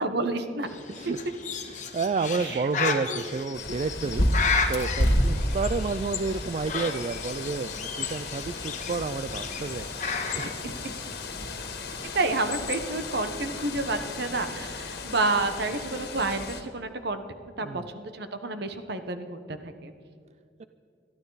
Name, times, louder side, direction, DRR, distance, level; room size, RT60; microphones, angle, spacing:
voice 1, 0.0-0.7 1.1-1.2 2.4-3.2 10.4-10.9 12.1-17.2 17.6-19.9, right 2 dB, 65° right, 8 dB, 1.2 m, -30 dB
Bird, 0.6-10.5, left 5 dB, 45° left, 1.5 m, -33 dB
voice 2, 1.7-4.3 4.7-9.9 10.3-10.7 11.9-12.2 17.6-17.9 20.6-20.7, right 4 dB, 35° right, 12 dB, 0.4 m, -30 dB
Bird 2, 3.5-16.6, left 1 dB, 60° left, 1.9 m, -31 dB
22.0 x 14.0 x 4.1 m, 2.4 s
head